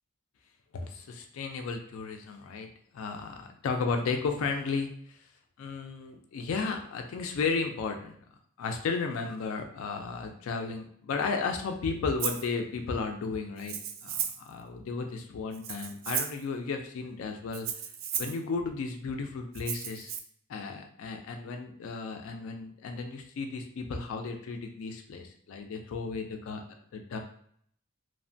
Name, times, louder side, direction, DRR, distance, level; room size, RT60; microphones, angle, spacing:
voice 1, 0.7-2.7 2.9-5.2 5.6-8.2 8.6-13.8 14.0-17.7 18.2-20.1 20.5-26.6 26.9-27.2, left 4 dB, 70° left, 4 dB, 0.3 m, -34 dB
Rattle (instrument), 12.2-12.5 13.6-14.5 15.5-16.4 17.5-18.4 19.5-20.2, right 8 dB, 45° right, 0.3 m, -34 dB
3.0 x 2.1 x 2.5 m, 0.65 s
head